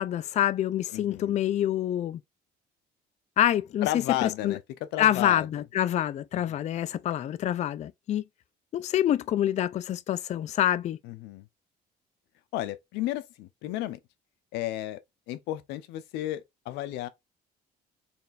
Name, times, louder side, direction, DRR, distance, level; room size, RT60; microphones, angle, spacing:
voice 1, 0.0-2.2 3.4-3.9 4.2-4.6 5.0-8.2 8.7-11.0, left 11 dB, 45° left, 0.4 m, -26 dB
voice 2, 0.9-1.4 3.8-5.5 11.0-11.4 12.5-14.0 14.5-15.0 15.3-17.1, left 14 dB, 90° left, 0.6 m, -33 dB
4.2 x 3.2 x 2.5 m
cardioid pair, 110°, 17 cm